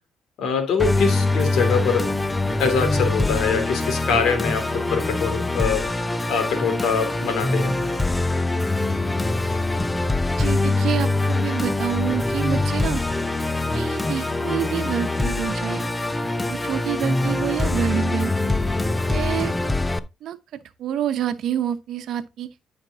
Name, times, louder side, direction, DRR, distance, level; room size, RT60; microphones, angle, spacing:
voice 1, 0.4-2.1 2.6-6.0 6.3-7.7, left 5 dB, 75° left, 2.5 m, -24 dB
Musical instrument, 0.8-20.0, left 2 dB, 15° left, 0.7 m, -23 dB
voice 2, 10.4-13.0 13.7-15.9 16.5-18.5 19.0-19.5 20.2-22.5, right 10 dB, 75° right, 0.9 m, -28 dB
13.0 x 5.2 x 2.8 m
cardioid pair, 90°, 0 cm